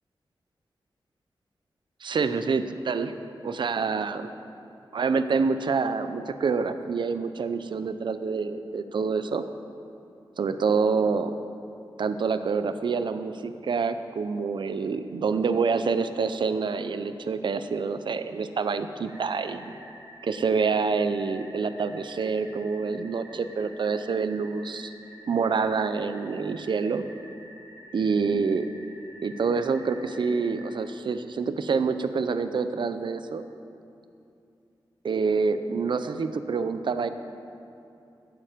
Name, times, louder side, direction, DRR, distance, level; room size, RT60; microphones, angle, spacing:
voice 1, 2.0-3.1 3.4-4.3 4.9-9.4 10.4-11.4 12.0-19.7 20.2-24.9 25.3-27.1 27.9-28.7 29.2-33.4 35.0-37.1, right 5 dB, 65° right, 10 dB, 0.6 m, -27 dB
sound 1, 19.1-30.7, equal, 50° right, 3.0 m, -49 dB
13.5 x 8.9 x 5.1 m, 2.6 s
wide cardioid pair, 100°, 9 cm